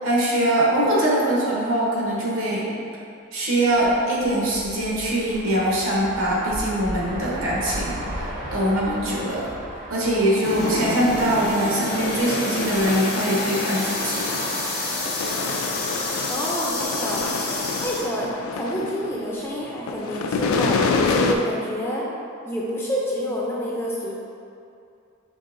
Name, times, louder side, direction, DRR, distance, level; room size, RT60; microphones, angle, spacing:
voice 1, 0.0-2.7 3.3-8.2 8.5-9.5 9.9-14.3, right 1 dB, 75° right, -5 dB, 1.0 m, -22 dB
sound 1, 3.7-12.9, equal, 45° right, 0.6 m, -36 dB
sound 2, 10.4-18.1, left 2 dB, 50° left, 0.7 m, -28 dB
sound 3, 11.9-19.4 19.7-21.3, left 4 dB, 80° left, 0.3 m, -28 dB
voice 2, 16.3-17.2 17.8-18.3 18.6-22.0 22.4-24.2, equal, 10° left, -4 dB, 0.4 m, -28 dB
5.3 x 3.4 x 2.5 m, 2.5 s
head